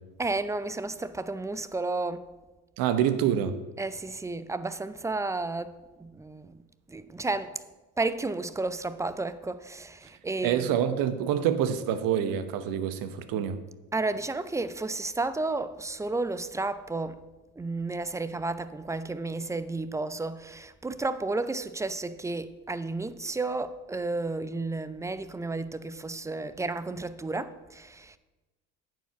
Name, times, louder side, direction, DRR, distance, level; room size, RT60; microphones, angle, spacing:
voice 1, 0.2-2.3 3.8-6.6 6.9-7.5 8.0-10.7 13.9-17.2 17.6-28.2, right 3 dB, 10° right, 0.4 m, -32 dB
voice 2, 2.8-3.6 10.4-13.6, right 9 dB, 65° right, 0.9 m, -26 dB
9.0 x 4.8 x 6.8 m
hypercardioid pair, 75°, 37 cm